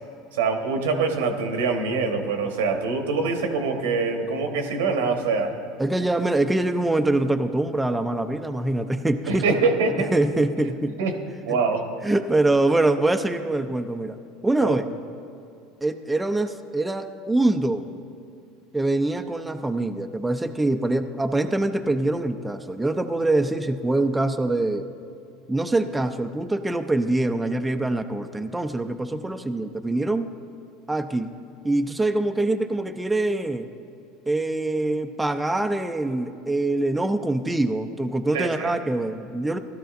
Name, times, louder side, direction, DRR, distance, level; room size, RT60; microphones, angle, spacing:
voice 1, 0.3-5.5 9.3-10.1 11.0-11.2 11.4-11.8 14.6-14.8 38.3-38.7, right 4 dB, 85° right, 5 dB, 1.1 m, -24 dB
voice 2, 5.8-9.4 10.0-11.0 11.5-11.6 12.0-14.2 14.4-14.8 15.8-17.9 18.7-24.9 25.5-30.3 30.9-31.3 31.6-33.7 34.3-39.6, right 2 dB, 10° right, 6 dB, 0.5 m, -24 dB
16.5 x 12.0 x 2.5 m, 2.5 s
hypercardioid pair, 95°, 0 cm